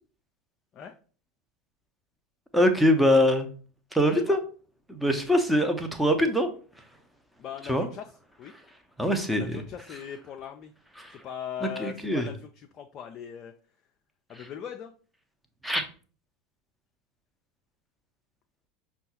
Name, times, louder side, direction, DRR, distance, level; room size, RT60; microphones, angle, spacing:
voice 1, 2.5-3.5 3.9-4.4 4.9-6.5 7.7-7.9 9.0-9.6 11.0-11.2 11.6-12.3 14.4-14.5 15.6-15.8, equal, ahead, 5 dB, 0.6 m, -23 dB
voice 2, 7.4-8.1 8.4-8.5 9.3-10.7 11.1-13.5 14.3-14.9, left 8 dB, 40° left, 5 dB, 0.3 m, -39 dB
5.4 x 2.2 x 2.8 m, 0.40 s
figure-of-eight pair, 80°, 0 cm